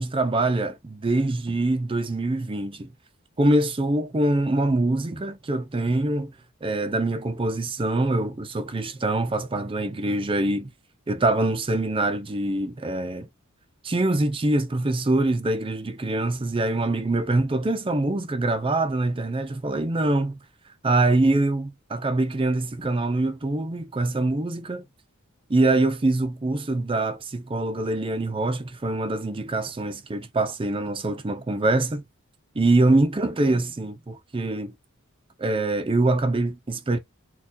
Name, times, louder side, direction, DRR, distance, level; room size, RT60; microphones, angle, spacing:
voice 1, 0.0-2.9 3.4-6.3 6.6-10.7 11.1-13.3 13.8-20.4 20.8-24.8 25.5-32.0 32.5-34.7 35.4-37.0, right 2 dB, 25° right, 0.5 m, -24 dB
4.3 x 2.3 x 2.6 m
head